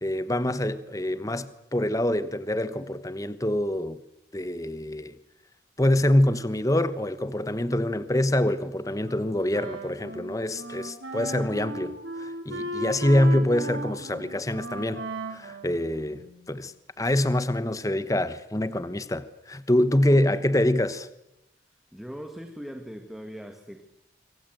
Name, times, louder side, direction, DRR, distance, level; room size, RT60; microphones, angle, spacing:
voice 1, 0.0-4.0 4.3-5.2 5.8-15.0 15.3-21.1, left 1 dB, 20° left, 1.1 m, -25 dB
Wind instrument woodwind instrument, 9.0-16.5, right 2 dB, 90° right, 7.0 m, -37 dB
voice 2, 20.1-20.4 21.9-23.8, equal, ahead, 1.6 m, -40 dB
25.5 x 25.0 x 7.9 m
head